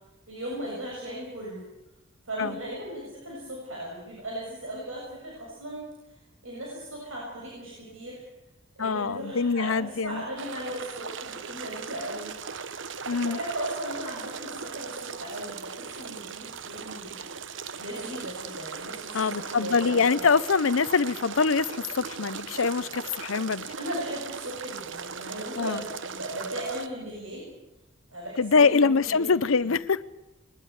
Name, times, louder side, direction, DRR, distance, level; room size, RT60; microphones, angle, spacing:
voice 1, 0.3-1.6 2.3-6.2 6.4-8.2 8.8-12.3 13.1-17.2 17.8-20.3 23.7-27.5 28.1-29.7, right 1 dB, 85° right, 7.2 m, -37 dB
voice 2, 8.8-10.2 13.1-13.4 19.1-23.7 25.6-25.8 28.4-30.0, left 5 dB, 85° left, 0.7 m, -24 dB
sound 1, 10.4-26.9, right 6 dB, 65° right, 0.9 m, -38 dB
21.5 x 20.5 x 8.2 m
head